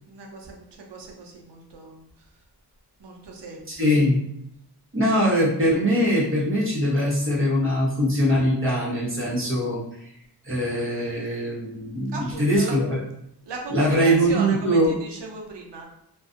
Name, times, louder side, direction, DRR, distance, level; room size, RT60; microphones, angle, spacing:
voice 1, 0.1-2.0 3.0-3.9 12.1-12.8 13.5-15.8, right 3 dB, 85° right, 0 dB, 0.7 m, -37 dB
voice 2, 3.7-4.2 4.9-9.8 10.4-13.0 13.7-15.0, equal, 30° right, -5 dB, 1.0 m, -22 dB
2.4 x 2.2 x 2.5 m, 0.76 s
cardioid pair, 60°, 41 cm